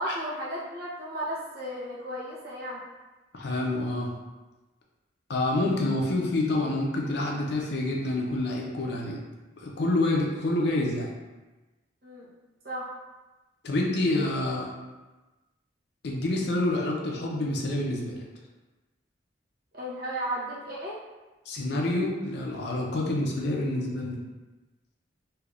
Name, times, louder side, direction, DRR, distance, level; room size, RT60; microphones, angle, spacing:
voice 1, 0.0-2.8 12.0-12.3 12.6-12.9 19.7-21.0, right 1 dB, 55° right, -7 dB, 0.9 m, -34 dB
voice 2, 3.3-4.1 5.3-9.2 9.6-11.1 13.6-14.7 16.0-18.2 21.5-24.2, left 2 dB, 60° left, -1 dB, 0.5 m, -27 dB
3.3 x 2.7 x 2.4 m, 1.1 s
head